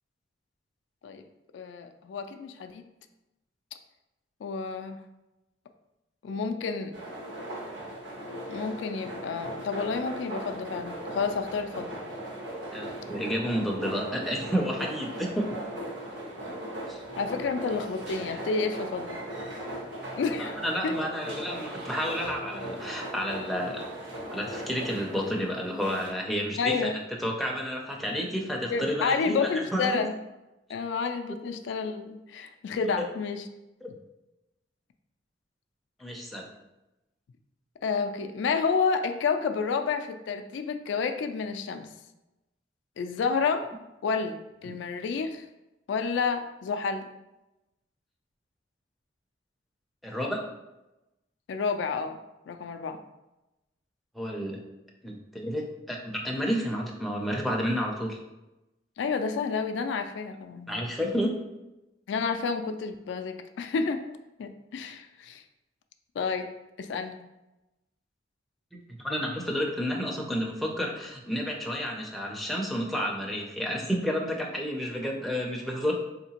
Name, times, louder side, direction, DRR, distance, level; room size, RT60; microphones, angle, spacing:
voice 1, 1.5-2.9 4.4-5.0 6.2-7.0 8.5-11.9 17.2-19.2 20.2-20.9 26.6-27.0 28.7-30.1 30.7-33.4 37.8-41.9 43.0-43.7 44.0-44.3 44.6-45.4 45.9-47.1 51.5-52.2 52.5-53.0 59.0-60.8 62.1-65.4 66.2-66.5 66.8-67.2, left 5 dB, 75° left, 7 dB, 0.3 m, -30 dB
sound 1, 6.9-26.1, right 1 dB, 85° right, 1.2 m, -38 dB
voice 2, 12.7-15.6 16.9-17.0 20.4-23.8 24.3-26.9 27.2-30.0 33.8-33.9 36.0-36.5 44.6-44.8 50.0-50.4 54.1-54.6 55.0-56.0 56.2-58.2 60.7-61.3 69.0-75.9, equal, ahead, -1 dB, 0.4 m, -30 dB
4.2 x 2.8 x 2.8 m, 0.97 s
head